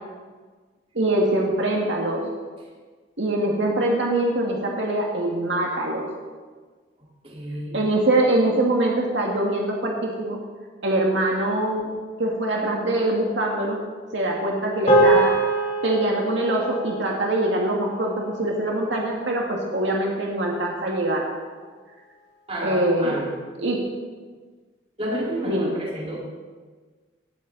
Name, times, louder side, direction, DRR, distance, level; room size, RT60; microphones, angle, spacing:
voice 1, 1.0-2.2 3.2-6.1 7.7-10.4 10.8-11.9 12.2-13.8 14.1-15.3 15.8-21.2 22.6-23.2 23.6-23.8 25.4-25.7, right 1 dB, 80° right, -2 dB, 2.0 m, -23 dB
voice 2, 7.2-7.9 22.5-23.3 25.0-26.2, right 1 dB, 35° right, -5 dB, 4.2 m, -30 dB
sound 1, 14.9-19.4, right 2 dB, 35° left, 2.9 m, -24 dB
18.0 x 12.0 x 4.0 m, 1.4 s
head